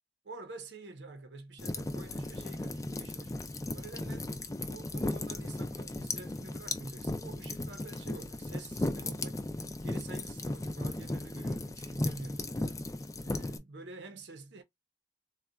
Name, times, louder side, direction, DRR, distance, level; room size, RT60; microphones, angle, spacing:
voice 1, 0.2-4.3 4.7-9.4 9.8-12.8 13.2-14.6, right 3 dB, 85° right, 0.8 m, -48 dB
sound 1, 1.6-13.6, left 2 dB, 20° left, 0.3 m, -36 dB
sound 2, 2.3-12.9, equal, 35° right, 0.9 m, -63 dB
3.9 x 2.3 x 2.3 m
head